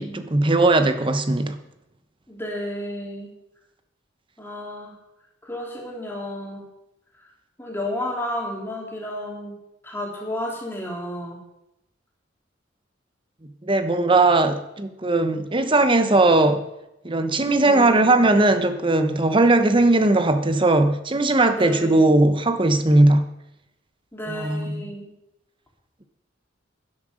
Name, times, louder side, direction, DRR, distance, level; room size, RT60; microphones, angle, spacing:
voice 1, 0.0-1.6 13.6-16.6 17.0-23.2 24.3-24.9, right 2 dB, 25° right, 9 dB, 1.0 m, -19 dB
voice 2, 2.3-3.3 4.4-4.9 5.4-6.7 7.6-9.5 9.8-11.4 17.6-18.2 21.5-22.2 24.1-25.1, left 1 dB, 10° left, -2 dB, 3.1 m, -32 dB
11.5 x 10.0 x 6.4 m, 0.88 s
head